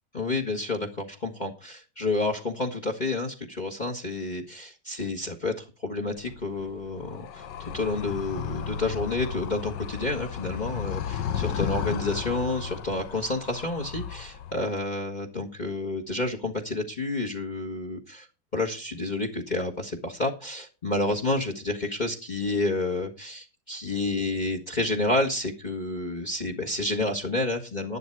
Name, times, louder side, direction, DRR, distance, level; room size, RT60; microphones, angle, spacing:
voice 1, 0.1-18.3 18.5-28.0, left 2 dB, 25° left, 4 dB, 1.6 m, -30 dB
Animal, 6.2-14.8, left 8 dB, 90° left, 1.6 m, -34 dB
11.5 x 11.0 x 4.6 m, 0.31 s
omnidirectional pair, 1.8 m